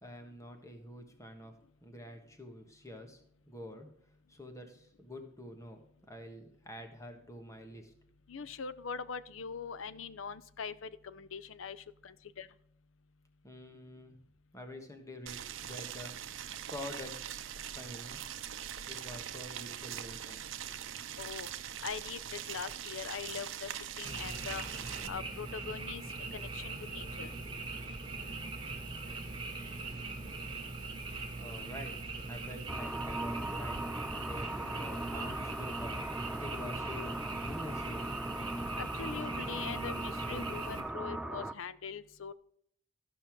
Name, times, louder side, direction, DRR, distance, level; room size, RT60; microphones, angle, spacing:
voice 1, 0.0-1.5 1.8-3.2 3.4-3.9 4.3-5.8 6.1-7.9 13.4-14.1 14.5-16.1 16.7-17.3 17.6-18.2 18.9-20.4 20.7-20.8 31.4-32.0 32.3-33.8 34.1-36.0 36.4-38.1, left 1 dB, 15° left, 5 dB, 1.4 m, -47 dB
voice 2, 8.3-11.8 12.0-12.5 21.2-21.5 21.8-23.7 24.0-24.6 25.1-26.0 26.3-27.3 38.8-42.3, left 6 dB, 80° left, 14 dB, 0.6 m, -42 dB
Boiling, 15.3-25.1, right 10 dB, 80° right, 0.7 m, -42 dB
Frog, 24.0-40.8, right 3 dB, 25° right, 1.8 m, -41 dB
sound 1, 32.7-41.5, right 1 dB, 5° right, 0.3 m, -39 dB
14.0 x 5.6 x 4.5 m, 0.69 s
head